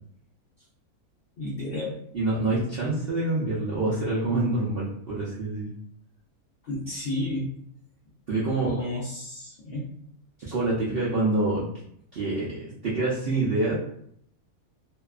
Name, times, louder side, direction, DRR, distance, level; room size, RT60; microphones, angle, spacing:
voice 1, 1.4-2.0 6.6-7.5 8.6-9.9 10.5-10.6, left 1 dB, 65° left, -5 dB, 0.5 m, -32 dB
voice 2, 2.1-5.7 8.3-8.7 10.5-11.6 12.1-13.7, right 2 dB, 60° right, -8 dB, 0.6 m, -26 dB
2.7 x 2.2 x 2.3 m, 0.70 s
omnidirectional pair, 1.6 m